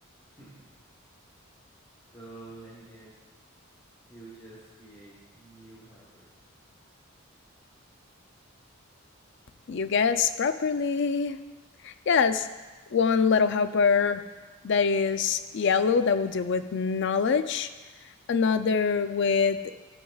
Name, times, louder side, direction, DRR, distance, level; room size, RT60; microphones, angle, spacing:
voice 1, 0.4-0.7 2.1-3.1 4.1-6.3, right 2 dB, 20° left, -7 dB, 1.3 m, -48 dB
voice 2, 9.7-11.4 11.8-12.5 12.9-14.2 14.6-17.7 18.3-19.6, left 5 dB, 55° left, 11 dB, 0.4 m, -24 dB
13.0 x 7.0 x 2.3 m, 1.2 s
head